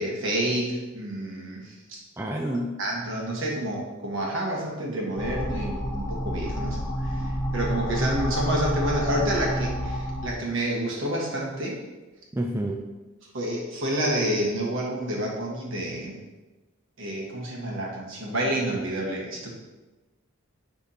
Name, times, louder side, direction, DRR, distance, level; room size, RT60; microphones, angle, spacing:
voice 1, 0.0-2.3 2.8-11.8 13.3-16.2 17.0-19.5, right 1 dB, 60° right, -2 dB, 1.4 m, -29 dB
voice 2, 2.2-2.8 12.3-12.9, right 1 dB, 10° right, 1 dB, 0.3 m, -29 dB
sound 1, 5.2-10.3, equal, 15° left, 0.7 m, -29 dB
9.9 x 3.5 x 2.9 m, 1.1 s
head